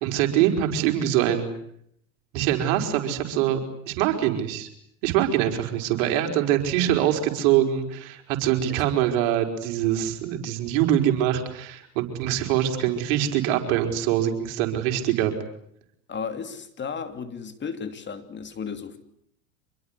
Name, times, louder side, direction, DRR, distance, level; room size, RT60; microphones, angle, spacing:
voice 1, 0.0-1.5 2.3-3.6 3.9-4.7 5.0-15.3, right 11 dB, 65° right, 4 dB, 5.2 m, -24 dB
voice 2, 16.1-19.0, left 6 dB, 25° left, 9 dB, 2.8 m, -34 dB
26.5 x 22.0 x 9.9 m, 0.72 s
hypercardioid pair, 100°, 40 cm